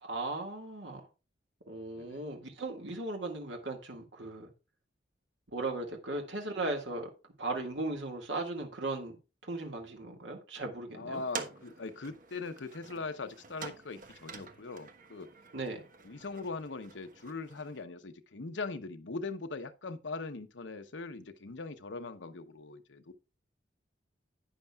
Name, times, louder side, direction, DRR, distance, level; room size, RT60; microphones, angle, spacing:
voice 1, 0.0-1.0 1.7-4.5 5.5-7.1 7.4-9.2 9.4-11.2 15.5-15.8, right 2 dB, 80° right, 1.9 m, -37 dB
voice 2, 10.9-15.3 16.0-23.1, left 3 dB, 85° left, 0.9 m, -41 dB
sound 1, 11.1-17.9, right 5 dB, 50° right, 1.2 m, -47 dB
11.5 x 9.0 x 2.4 m
head